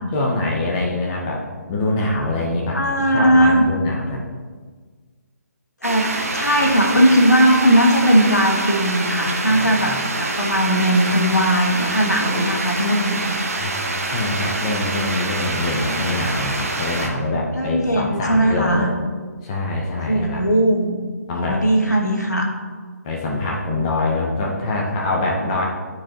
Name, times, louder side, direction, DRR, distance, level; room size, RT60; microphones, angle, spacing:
voice 1, 0.1-1.4 1.7-4.2 9.5-10.1 13.6-18.9 19.4-20.4 21.3-21.6 23.0-25.6, left 2 dB, 25° left, -2 dB, 0.9 m, -24 dB
voice 2, 2.7-3.6 5.8-13.2 17.5-18.9 20.1-21.0 21.3-22.4, equal, 80° left, 0 dB, 1.5 m, -18 dB
sound 1, 5.8-17.1, right 2 dB, 60° right, 1.1 m, -26 dB
12.0 x 4.6 x 3.0 m, 1.5 s
figure-of-eight pair, 140°, 9 cm